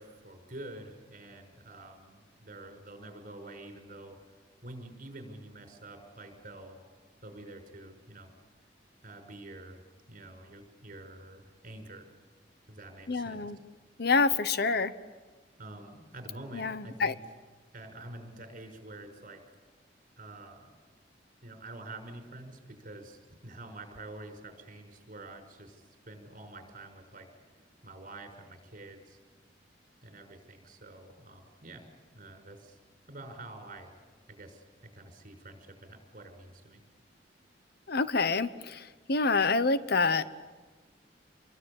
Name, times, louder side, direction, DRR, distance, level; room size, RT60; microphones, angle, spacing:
voice 1, 0.0-4.2 4.6-6.8 7.2-8.3 9.0-12.1 12.7-13.5 15.6-17.2 17.7-19.4 20.2-20.7 21.4-27.3 27.8-29.2 30.0-31.9 32.1-32.8 33.1-33.9 34.3-34.6 34.9-36.8, right 2 dB, 45° right, 5 dB, 5.9 m, -47 dB
voice 2, 13.1-13.6 14.0-14.9 16.5-17.1 37.9-40.3, left 4 dB, 60° left, 13 dB, 1.0 m, -27 dB
28.0 x 23.0 x 8.8 m, 1.3 s
head